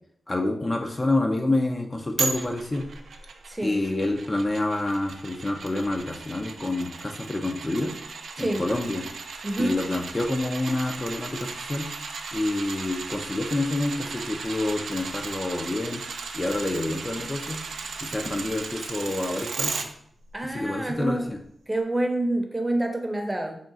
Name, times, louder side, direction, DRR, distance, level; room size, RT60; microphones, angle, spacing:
voice 1, 0.3-2.8 3.6-7.9 8.4-9.1 9.6-11.9 12.3-16.0 16.3-17.6 18.0-19.8 20.4-21.4, left 2 dB, 30° left, 3 dB, 0.5 m, -28 dB
sound 1, 2.2-19.9 20.3-20.4, right 4 dB, 85° right, 0.4 m, -36 dB
voice 2, 9.4-9.8 20.3-21.3 21.7-23.6, right 1 dB, 15° right, 3 dB, 0.7 m, -27 dB
3.7 x 2.3 x 3.9 m, 0.67 s
cardioid pair, 60°, 0 cm